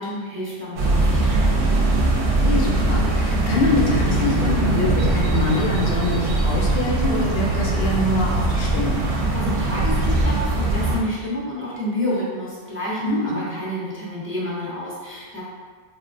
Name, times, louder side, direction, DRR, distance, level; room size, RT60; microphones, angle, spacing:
voice 1, 0.0-1.8 9.3-15.4, equal, 15° right, -8 dB, 0.4 m, -29 dB
sound 1, 0.8-11.0, right 2 dB, 65° right, 0.7 m, -21 dB
voice 2, 2.3-9.0 13.1-13.4, left 2 dB, 65° left, -2 dB, 0.8 m, -24 dB
3.6 x 2.4 x 2.5 m, 1.5 s
omnidirectional pair, 1.1 m